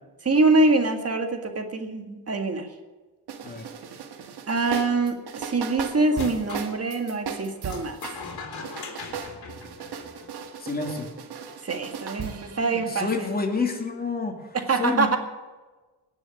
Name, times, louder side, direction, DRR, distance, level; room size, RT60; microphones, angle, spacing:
voice 1, 0.2-2.7 4.5-8.0 11.6-13.3 14.5-15.2, right 3 dB, 35° right, 6 dB, 1.9 m, -24 dB
sound 1, 3.3-8.2 8.6-13.1, right 6 dB, 70° right, 1.7 m, -37 dB
sound 2, 6.1-6.7 7.7-10.4, left 4 dB, 65° left, 3.0 m, -39 dB
voice 2, 10.6-11.1 12.5-15.2, left 4 dB, 25° left, 2 dB, 2.7 m, -29 dB
18.0 x 7.0 x 9.6 m, 1.3 s
cardioid pair, 105°, 40 cm